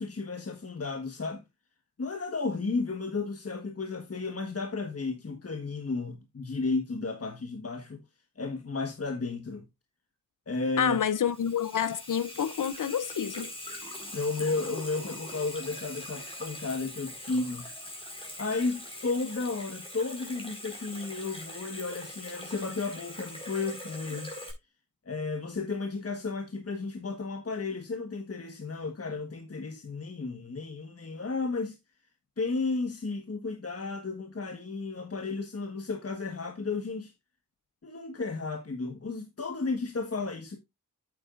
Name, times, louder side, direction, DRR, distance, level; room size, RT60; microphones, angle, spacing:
voice 1, 0.0-1.4 2.0-8.0 8.4-9.6 10.5-11.0 14.1-17.7 18.4-24.3 25.0-31.8 32.4-37.1 37.8-40.6, left 3 dB, 45° left, 1.5 m, -33 dB
voice 2, 10.8-13.5, left 8 dB, 65° left, 0.7 m, -28 dB
Water tap faucet / Sink (filling or washing), 10.9-24.5, left 1 dB, 15° left, 4.4 m, -42 dB
8.7 x 8.4 x 2.5 m
cardioid pair, 65°, 34 cm